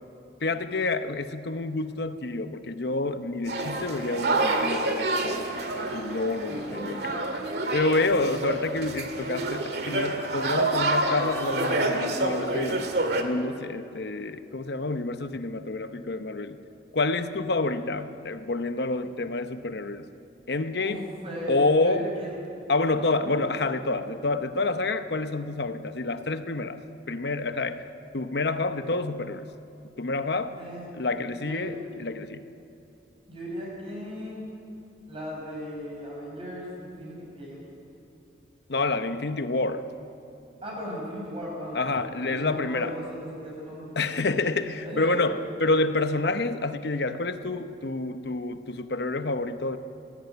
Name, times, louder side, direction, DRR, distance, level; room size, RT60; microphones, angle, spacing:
voice 1, 0.4-5.5 5.8-7.1 7.7-12.8 13.2-16.6 16.9-20.1 20.5-21.1 21.5-22.1 22.7-26.8 27.1-27.8 28.1-29.5 30.0-30.6 31.0-32.5 38.7-39.8 41.7-42.9 44.0-49.8, left 3 dB, 65° left, 10 dB, 0.9 m, -28 dB
sound 1, 3.5-13.2, right 2 dB, 65° right, 2.0 m, -28 dB
voice 2, 6.5-6.9 20.8-22.3 23.2-23.4 30.6-30.9 31.4-31.7 33.3-34.5 35.1-37.6 40.6-41.8 42.3-44.1 44.8-45.3, equal, 30° right, -3 dB, 6.0 m, -37 dB
19.0 x 16.0 x 9.3 m, 2.7 s
head